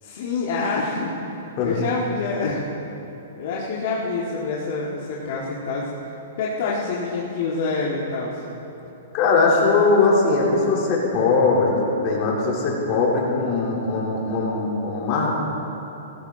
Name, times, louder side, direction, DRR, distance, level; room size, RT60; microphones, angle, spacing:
voice 1, 0.0-2.7 3.4-5.9 6.4-8.4, left 3 dB, 55° left, -4 dB, 1.8 m, -27 dB
voice 2, 9.1-15.4, left 3 dB, 35° left, -3 dB, 3.3 m, -20 dB
16.0 x 16.0 x 3.9 m, 2.9 s
hypercardioid pair, 150°, 0 cm